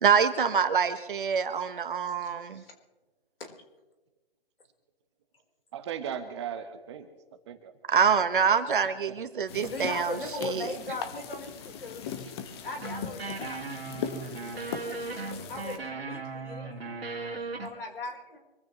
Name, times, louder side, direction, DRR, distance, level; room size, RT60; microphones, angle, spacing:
voice 1, 0.0-2.6 7.9-10.1 10.5-10.7, right 6 dB, 60° right, 10 dB, 1.5 m, -25 dB
voice 2, 2.2-2.7 3.4-3.5 9.6-12.1 12.6-13.6 15.5-17.0 17.6-18.4, left 2 dB, 70° left, 2 dB, 4.4 m, -39 dB
voice 3, 5.7-7.1 7.5-7.7 8.0-8.2 9.2-9.3 15.3-15.4, right 8 dB, 30° right, 8 dB, 1.3 m, -37 dB
sound 1, 9.5-15.8, left 7 dB, 25° left, 1.3 m, -40 dB
sound 2, 12.8-17.7, right 3 dB, 80° right, 2.6 m, -37 dB
25.5 x 15.5 x 3.2 m, 1.1 s
hypercardioid pair, 150°, 30 cm